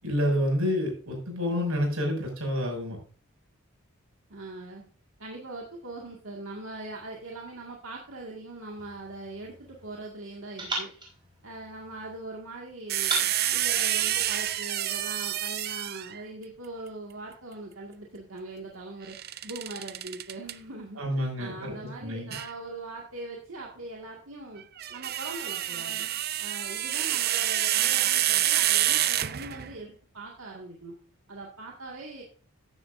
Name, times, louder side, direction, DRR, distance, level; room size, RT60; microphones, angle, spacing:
voice 1, 0.0-3.0 21.0-21.7 22.0-22.3, equal, 90° right, 1 dB, 6.5 m, -28 dB
voice 2, 4.3-4.8 5.2-10.9 11.4-19.2 19.4-24.6 24.9-26.0 26.4-30.9 31.3-32.2, right 2 dB, 70° right, -2 dB, 2.1 m, -41 dB
sound 1, 8.8-10.0 10.6-12.2 13.0-14.6, right 1 dB, 20° right, 4.5 m, -38 dB
sound 2, 12.9-16.2 19.1-20.5 22.3-22.5 24.6-29.8, right 12 dB, 45° right, 0.5 m, -28 dB
14.0 x 10.0 x 2.6 m, 0.41 s
head